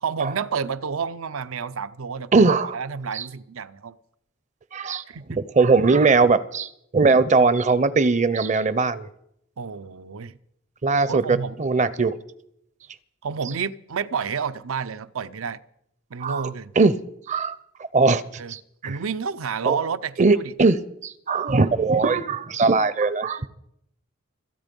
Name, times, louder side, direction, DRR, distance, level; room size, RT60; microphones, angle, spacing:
voice 1, 0.0-4.0 4.8-5.4 9.6-10.4 11.1-11.6 13.2-15.6 16.1-16.7 18.4-18.5 18.8-20.5, right 6 dB, 85° right, 0.6 m, -30 dB
voice 2, 2.3-2.8 3.1-3.2 4.7-5.0 5.4-9.1 10.8-12.2 16.2-16.5 16.8-17.0 17.3-17.6 17.9-18.2 18.5-19.0 19.7-19.8 20.2-23.5, right 4 dB, 35° right, 0.5 m, -20 dB
25.5 x 8.9 x 5.3 m
head